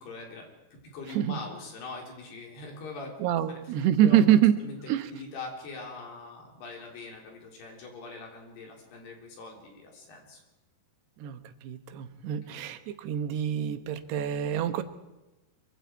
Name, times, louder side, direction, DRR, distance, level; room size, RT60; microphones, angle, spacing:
voice 1, 0.0-3.2 3.5-3.7 4.0-4.2 4.6-10.4 12.5-12.6, left 3 dB, 80° left, 1 dB, 5.7 m, -42 dB
voice 2, 3.2-4.6 4.9-5.1 11.2-14.8, right 10 dB, 90° right, 9 dB, 3.2 m, -25 dB
24.5 x 23.5 x 4.6 m, 1.0 s
omnidirectional pair, 4.6 m